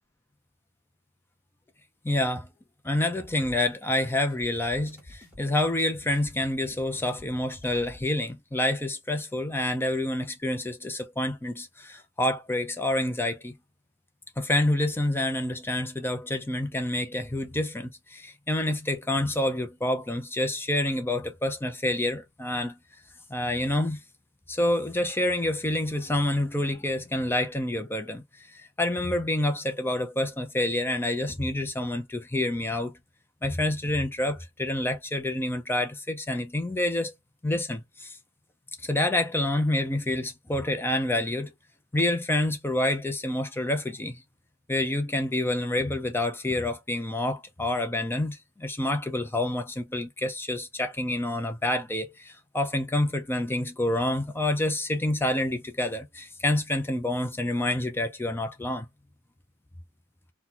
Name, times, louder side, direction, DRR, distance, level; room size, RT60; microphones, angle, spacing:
voice 1, 2.0-2.5 2.8-13.5 14.4-22.8 23.3-24.0 24.5-32.9 33.4-37.1 37.4-38.2 38.8-41.5 41.9-44.2 44.7-58.9, left 1 dB, 10° left, 0.4 m, -28 dB
sound 1, 3.1-8.1, left 1 dB, 5° right, 1.5 m, -50 dB
2.8 x 2.2 x 3.8 m
head